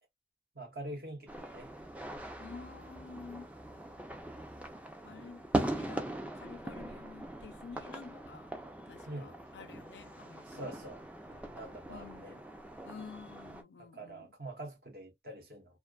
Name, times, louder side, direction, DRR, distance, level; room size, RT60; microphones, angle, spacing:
voice 1, 0.5-1.7 9.1-9.4 10.5-11.0 11.3-12.4 13.8-15.8, right 1 dB, 60° right, 0.9 m, -45 dB
sound 1, 1.3-13.6, right 1 dB, 10° right, 0.3 m, -41 dB
voice 2, 2.4-3.5 5.0-8.5 8.9-10.8 11.9-12.4 12.8-14.3, left 5 dB, 80° left, 0.4 m, -50 dB
2.5 x 2.3 x 2.2 m
head